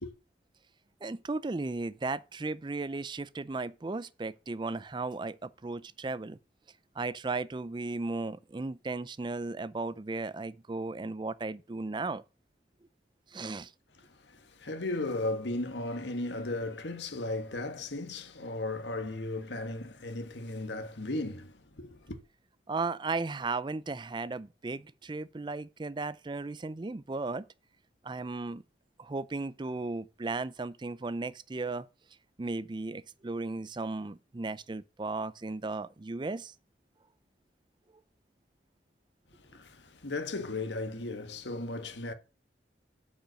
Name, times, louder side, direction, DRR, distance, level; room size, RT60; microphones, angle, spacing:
voice 1, 1.0-6.4 7.0-12.2 13.3-13.7 22.7-27.5 28.0-28.6 29.0-31.9 32.4-36.5, right 3 dB, 25° right, 0.4 m, -35 dB
voice 2, 14.0-22.2 39.3-42.1, left 2 dB, 75° left, 1.5 m, -36 dB
8.7 x 5.4 x 6.4 m
head